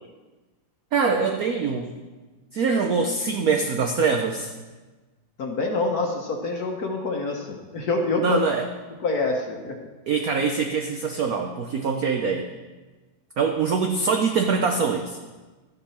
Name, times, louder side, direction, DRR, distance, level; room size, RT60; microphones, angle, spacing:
voice 1, 0.9-1.9 2.5-4.5 8.2-8.7 10.1-12.5 13.4-15.2, right 5 dB, 70° right, 4 dB, 0.8 m, -23 dB
voice 2, 5.4-8.4 9.0-9.8, left 3 dB, 50° left, 2 dB, 1.3 m, -26 dB
13.0 x 9.4 x 4.3 m, 1.3 s
omnidirectional pair, 2.4 m